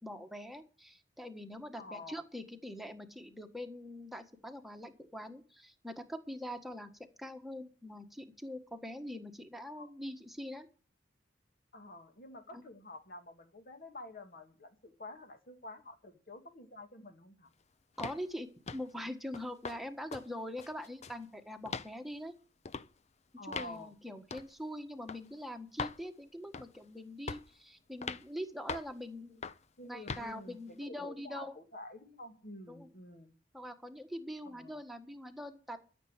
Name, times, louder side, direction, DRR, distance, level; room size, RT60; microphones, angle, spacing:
voice 1, 0.0-6.9 7.2-10.7 12.5-12.6 18.0-22.3 23.5-29.5 29.8-31.5 32.7-32.9 33.5-35.8, equal, ahead, 1.5 m, -43 dB
voice 2, 1.8-2.2 9.8-9.9 11.7-17.5 23.4-23.9 29.8-33.3 34.5-34.8, left 1 dB, 50° left, 2.0 m, -49 dB
sound 1, 18.0-18.2 18.7-18.9 19.3-19.8 20.1-20.3 20.6-21.2 21.7-21.9 22.7-22.9 23.5-23.8 24.3-24.5 25.1-25.2 25.8-26.0 26.5-26.8 27.3-27.5 28.0-28.2 28.7-28.9 29.4-29.6 30.1-30.3, left 5 dB, 35° left, 0.6 m, -40 dB
13.5 x 7.0 x 8.8 m
head